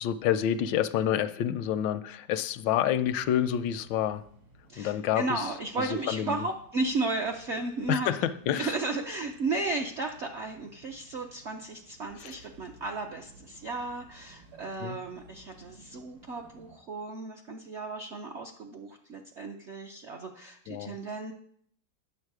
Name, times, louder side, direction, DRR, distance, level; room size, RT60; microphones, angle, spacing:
voice 1, 0.0-4.2 4.8-5.4 5.8-6.4 7.9-8.7 12.2-12.3 14.8-15.0 20.7-21.0, left 10 dB, 80° left, 13 dB, 1.3 m, -28 dB
sound 1, 2.9-16.8, right 2 dB, 85° right, 2.7 m, -57 dB
voice 2, 4.7-8.1 8.6-21.3, right 3 dB, 60° right, 2 dB, 0.7 m, -34 dB
9.8 x 7.0 x 4.7 m, 0.63 s
omnidirectional pair, 2.0 m